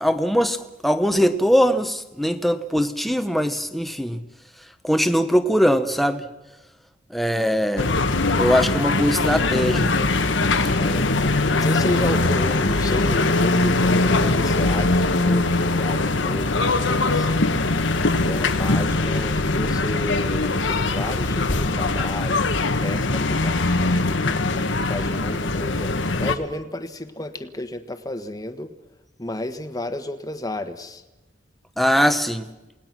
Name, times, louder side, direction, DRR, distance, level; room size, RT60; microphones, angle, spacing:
voice 1, 0.0-4.2 4.8-6.2 7.1-7.9 8.4-9.9 31.8-32.5, equal, ahead, 1.1 m, -21 dB
voice 2, 7.3-8.0 10.7-11.1 11.5-17.5 18.2-22.4 22.8-24.4 24.9-28.8 29.2-31.0, left 1 dB, 20° left, 1.4 m, -32 dB
sound 1, 7.8-26.4, left 2 dB, 90° left, 1.5 m, -21 dB
28.5 x 19.0 x 6.1 m
head